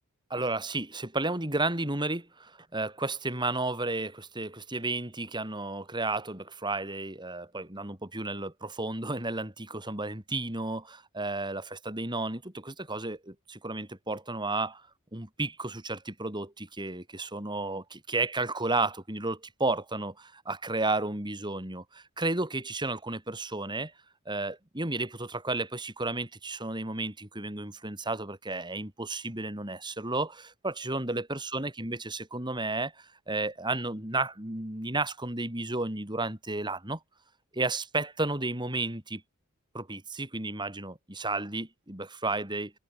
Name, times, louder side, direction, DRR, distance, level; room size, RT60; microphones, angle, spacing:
voice 1, 0.3-14.8 15.1-23.9 24.3-37.0 37.5-39.2 39.7-42.7, right 2 dB, 20° right, 3.8 m, -32 dB
head